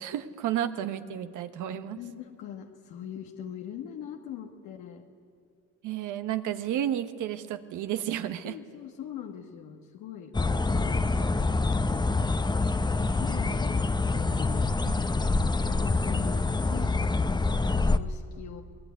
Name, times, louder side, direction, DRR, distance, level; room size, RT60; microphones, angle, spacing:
voice 1, 0.0-2.0 5.8-8.6, right 11 dB, 90° right, 9 dB, 1.2 m, -32 dB
voice 2, 2.0-5.1 8.4-11.9 13.0-14.8 15.6-18.6, left 9 dB, 90° left, 2 dB, 1.5 m, -42 dB
sound 1, 10.3-18.0, left 3 dB, 15° left, 0.8 m, -26 dB
23.5 x 19.5 x 9.7 m, 2.3 s
cardioid pair, 90°, 30 cm